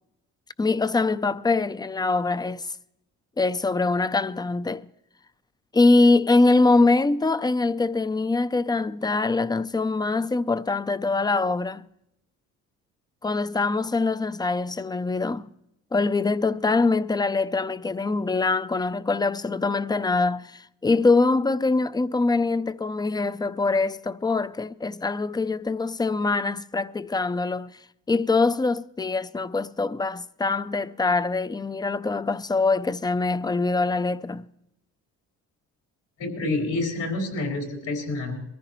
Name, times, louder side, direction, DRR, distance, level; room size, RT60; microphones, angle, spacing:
voice 1, 0.6-2.7 3.4-4.9 5.7-11.9 13.2-15.5 15.9-27.8 28.1-34.5, left 3 dB, 15° left, 0.5 m, -23 dB
voice 2, 36.2-38.4, left 2 dB, 75° left, 4.3 m, -28 dB
22.5 x 14.5 x 3.1 m
cardioid pair, 90°, 30 cm